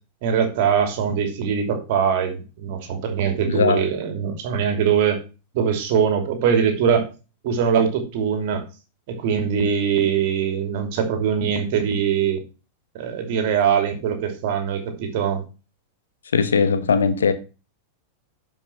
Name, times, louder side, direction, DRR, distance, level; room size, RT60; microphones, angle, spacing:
voice 1, 0.2-5.2 5.5-7.1 7.4-8.6 9.1-12.4 12.9-15.4, right 7 dB, 50° right, 2.9 m, -22 dB
voice 2, 3.5-3.8 16.3-17.3, left 5 dB, 70° left, 1.3 m, -19 dB
12.0 x 5.7 x 4.6 m
figure-of-eight pair, 90°, 0 cm